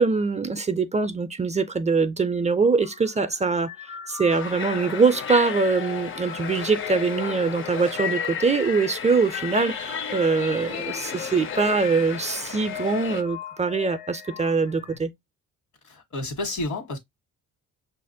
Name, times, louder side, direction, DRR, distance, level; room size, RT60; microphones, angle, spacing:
voice 1, 0.0-3.7 4.1-15.1, right 4 dB, 25° right, 0.4 m, -23 dB
sound 1, 2.6-15.0, left 9 dB, 90° left, 0.8 m, -41 dB
sound 2, 4.3-13.2, left 7 dB, 45° left, 0.5 m, -33 dB
voice 2, 15.8-17.0, left 2 dB, 70° left, 1.3 m, -30 dB
5.7 x 2.5 x 2.6 m
cardioid pair, 90°, 30 cm